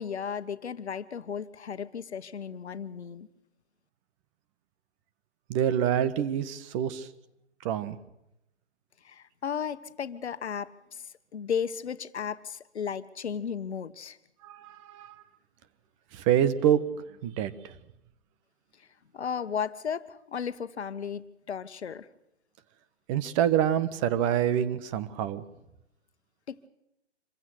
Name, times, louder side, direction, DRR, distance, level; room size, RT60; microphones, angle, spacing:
voice 1, 0.0-3.3 9.0-14.2 19.1-22.1 26.5-26.7, left 7 dB, 70° left, 12 dB, 1.4 m, -35 dB
voice 2, 5.5-7.1 7.6-8.0 14.4-15.1 16.1-16.8 17.2-17.7 23.1-25.4, right 10 dB, 30° right, 13 dB, 1.4 m, -26 dB
26.5 x 15.5 x 8.0 m, 0.86 s
hypercardioid pair, 135°, 35 cm